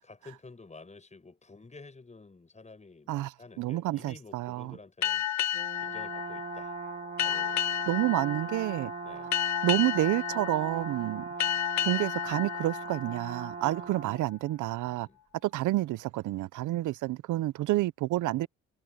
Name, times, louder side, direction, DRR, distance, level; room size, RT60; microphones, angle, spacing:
voice 1, 0.0-5.3 5.8-6.7 7.2-7.9 9.0-9.3 11.3-11.6 13.6-13.9 14.9-15.2, left 3 dB, 25° left, 7.7 m, -51 dB
voice 2, 3.1-4.7 7.9-8.9 9.6-11.3 11.8-15.1 15.4-18.5, right 16 dB, 80° right, 0.7 m, -29 dB
sound 1, 5.0-14.2, left 11 dB, 65° left, 0.8 m, -33 dB
Brass instrument, 5.5-14.3, right 6 dB, 35° right, 1.5 m, -40 dB
cardioid pair, 90°, 30 cm